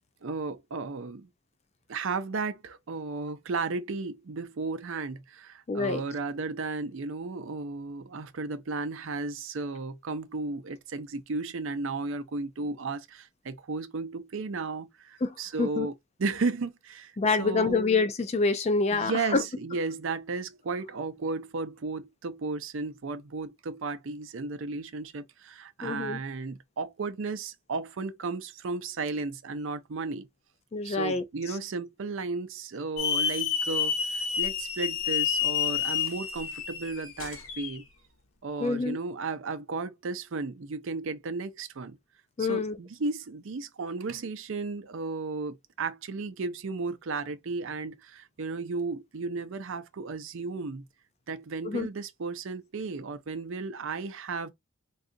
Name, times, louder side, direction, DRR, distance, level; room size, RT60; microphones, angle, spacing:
voice 1, 0.2-1.3 1.9-15.9 16.2-17.1 17.4-17.8 18.9-30.3 30.8-37.8 38.4-42.0 42.4-50.9 51.3-54.5, right 3 dB, 60° right, 0.5 m, -34 dB
voice 2, 5.7-6.0 15.2-15.9 17.2-19.4 25.8-26.2 30.7-31.2 38.6-39.0 42.4-42.8 51.6-51.9, left 4 dB, 30° left, 0.3 m, -27 dB
Hiss / Alarm, 33.0-37.8, left 8 dB, 70° left, 0.9 m, -29 dB
3.7 x 2.3 x 2.5 m
head